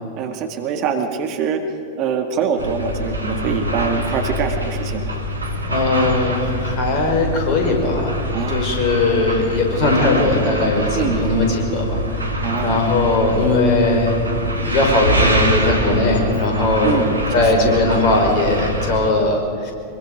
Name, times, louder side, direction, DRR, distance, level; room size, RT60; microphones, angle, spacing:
voice 1, 0.1-1.6 2.0-5.1 8.3-8.6 10.9-11.2 12.4-12.8 16.8-17.7, right 6 dB, 40° right, 5 dB, 2.0 m, -24 dB
sound 1, 2.6-19.1, equal, 80° right, 2.0 m, -24 dB
voice 2, 5.6-8.2 8.5-14.2 14.6-17.0 17.3-19.7, left 2 dB, 40° left, 1 dB, 5.1 m, -19 dB
25.0 x 22.5 x 5.3 m, 2.7 s
figure-of-eight pair, 90°, 0 cm